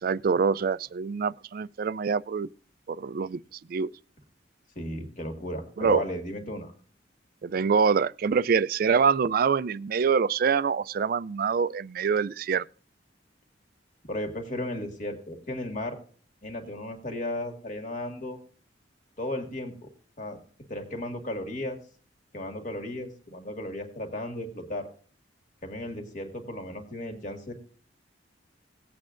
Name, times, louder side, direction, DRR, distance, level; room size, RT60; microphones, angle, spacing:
voice 1, 0.0-2.5 2.9-3.4 3.7-3.9 5.8-6.0 7.4-12.6, right 6 dB, 50° right, 0.3 m, -25 dB
voice 2, 4.8-6.7 14.0-16.0 16.4-18.4 19.2-19.9 20.2-20.4 20.7-21.8 22.3-24.9 25.6-27.5, left 1 dB, 45° left, 2.0 m, -35 dB
18.5 x 8.4 x 2.5 m
head